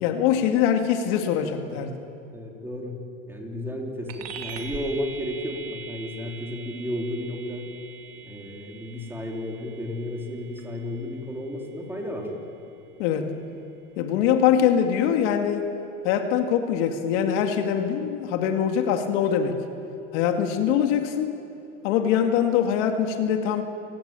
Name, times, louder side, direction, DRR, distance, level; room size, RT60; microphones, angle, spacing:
voice 1, 0.0-1.9 13.0-13.3 14.0-15.7 16.0-19.6 20.1-21.4 21.8-23.6, left 8 dB, 60° left, 5 dB, 2.3 m, -23 dB
voice 2, 2.3-3.0 3.3-7.7 8.2-12.3, left 1 dB, 5° right, 0 dB, 4.1 m, -33 dB
sound 1, 4.1-13.9, right 6 dB, 35° right, 2.4 m, -43 dB
28.5 x 16.0 x 9.1 m, 2.7 s
supercardioid pair, 135°, 38 cm